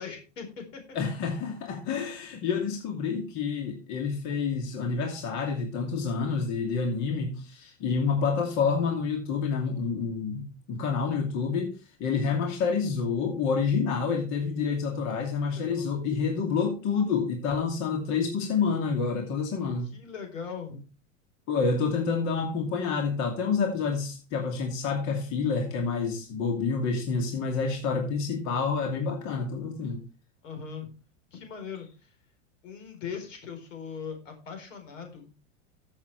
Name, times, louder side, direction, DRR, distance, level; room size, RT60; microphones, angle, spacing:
voice 1, 0.0-1.0 15.0-15.2 15.5-15.9 19.8-20.8 30.4-30.9 31.3-32.1 32.6-35.3, left 6 dB, 80° left, 5 dB, 4.4 m, -40 dB
voice 2, 0.9-11.7 12.0-19.9 21.5-30.0, left 5 dB, 45° left, 2 dB, 2.6 m, -28 dB
14.5 x 7.3 x 3.3 m, 0.33 s
hypercardioid pair, 110°, 38 cm